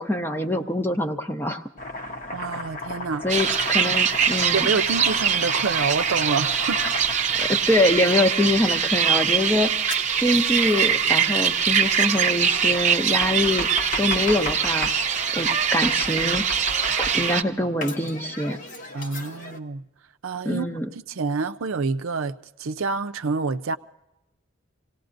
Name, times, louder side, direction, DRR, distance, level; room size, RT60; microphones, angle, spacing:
voice 1, 0.0-1.6 3.2-4.7 7.4-9.9 10.2-13.7 14.0-14.9 15.3-16.4 17.0-18.6 20.4-20.9, left 1 dB, 10° left, 0.7 m, -24 dB
Domestic sounds home sounds, 1.8-8.2 9.9-11.0 12.7-15.0 15.8-17.4 17.8-19.6, left 1 dB, 40° left, 1.0 m, -34 dB
voice 2, 2.3-3.4 4.5-6.9 18.9-19.8 20.2-23.8, right 4 dB, 80° right, 0.6 m, -27 dB
sound 1, 3.3-17.4, right 7 dB, 35° right, 0.7 m, -23 dB
27.5 x 18.0 x 2.6 m
head